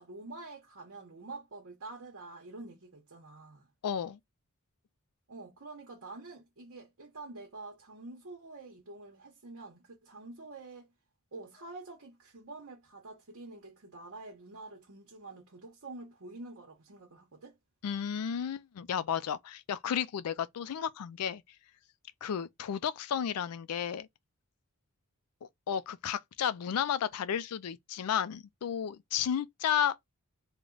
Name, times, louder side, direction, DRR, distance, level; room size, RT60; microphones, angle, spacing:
voice 1, 0.0-3.7 5.3-10.9 11.3-17.6, right 2 dB, 60° right, 0.9 m, -47 dB
voice 2, 3.8-4.2 17.8-21.4 22.2-24.1 25.7-30.0, left 8 dB, 85° left, 0.4 m, -32 dB
3.2 x 2.1 x 3.8 m
head